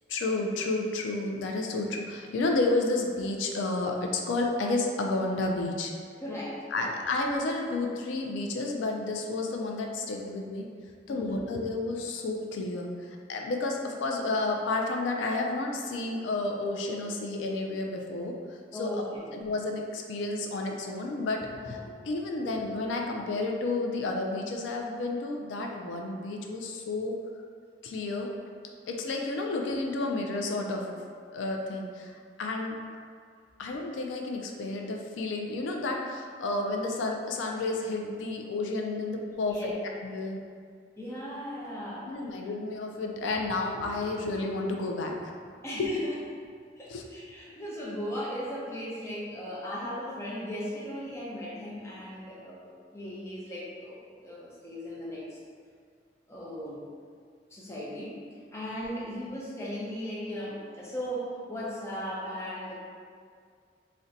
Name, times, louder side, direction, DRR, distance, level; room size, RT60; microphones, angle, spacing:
voice 1, 0.1-5.9 6.7-10.7 11.1-19.0 19.3-27.2 27.8-28.3 28.9-31.0 31.3-32.1 32.4-32.8 33.6-39.7 40.0-40.4 42.1-45.3 45.8-45.9 46.9-47.0 58.8-58.9, left 2 dB, 85° left, 1 dB, 0.3 m, -31 dB
voice 2, 6.2-6.9 11.1-11.4 18.7-19.2 21.6-21.8 39.4-39.8 41.0-42.1 45.6-46.0 46.8-54.0 54.2-55.2 56.3-56.8 57.5-62.7, equal, 15° left, -6 dB, 0.5 m, -37 dB
2.5 x 2.1 x 3.8 m, 2.1 s
head